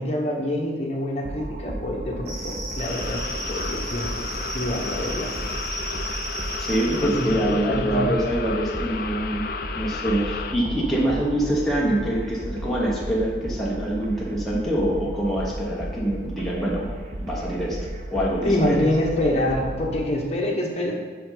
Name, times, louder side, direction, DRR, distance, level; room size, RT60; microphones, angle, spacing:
voice 1, 0.0-4.3 4.5-5.5 6.9-7.4 7.7-8.1 18.4-20.9, left 1 dB, 35° left, -1 dB, 1.1 m, -26 dB
sound 1, 1.2-20.1, right 1 dB, 45° right, 0.6 m, -34 dB
sound 2, 2.3-7.6, right 1 dB, 65° right, 1.7 m, -35 dB
sound 3, 2.8-10.5, left 5 dB, 55° left, 0.4 m, -33 dB
voice 2, 6.6-9.5 9.7-16.9 17.2-17.8 18.1-18.9, right 1 dB, ahead, -6 dB, 1.0 m, -25 dB
7.6 x 5.4 x 3.9 m, 1.6 s
head